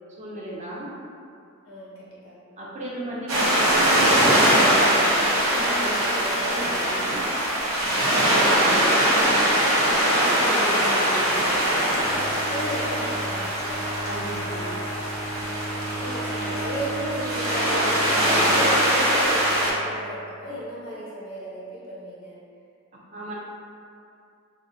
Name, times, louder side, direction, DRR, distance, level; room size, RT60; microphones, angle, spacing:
voice 1, 0.2-0.9 2.6-5.0 5.3-7.2 9.1-9.5 10.0-11.7 14.0-14.8 22.9-23.3, right 1 dB, 35° right, -5 dB, 0.4 m, -34 dB
voice 2, 1.6-2.4 12.5-13.9 16.0-22.4, equal, 80° left, -7 dB, 0.8 m, -34 dB
sound 1, 3.3-19.7, equal, 85° right, 0.6 m, -22 dB
Bowed string instrument, 11.9-20.2, right 1 dB, 30° left, 0.3 m, -35 dB
2.5 x 2.0 x 2.5 m, 2.4 s
head